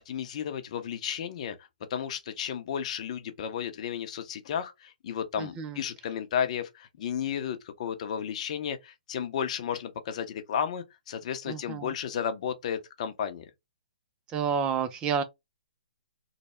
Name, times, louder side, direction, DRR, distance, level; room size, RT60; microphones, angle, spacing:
voice 1, 0.1-1.6 1.9-13.5, left 8 dB, 45° left, 0.7 m, -33 dB
voice 2, 5.4-5.8 11.5-11.9 14.3-15.2, right 7 dB, 20° right, 0.4 m, -30 dB
3.2 x 2.2 x 4.2 m
hypercardioid pair, 140°, 5 cm